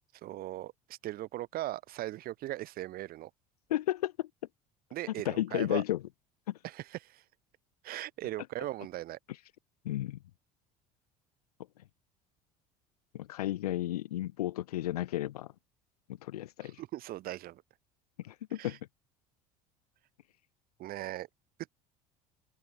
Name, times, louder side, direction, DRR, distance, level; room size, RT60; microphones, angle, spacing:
voice 1, 0.2-3.3 4.9-5.8 6.6-7.2 7.8-9.2 16.6-17.6 18.6-18.8 20.8-21.3, right 15 dB, 50° right, 1.2 m, -39 dB
voice 2, 3.7-4.3 5.2-6.0 6.5-6.6 9.8-10.2 13.1-15.5 16.2-16.8 18.2-18.8, left 14 dB, 75° left, 1.4 m, -33 dB
open air
hypercardioid pair, 65°, 20 cm